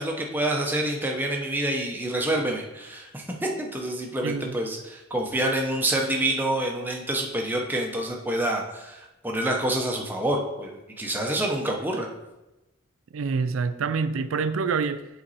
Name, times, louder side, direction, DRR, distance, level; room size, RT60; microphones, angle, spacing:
voice 1, 0.0-12.1, right 1 dB, 10° right, 0.9 m, -27 dB
voice 2, 4.2-4.6 13.1-15.1, right 5 dB, 85° right, 0.4 m, -26 dB
7.8 x 4.3 x 4.2 m
head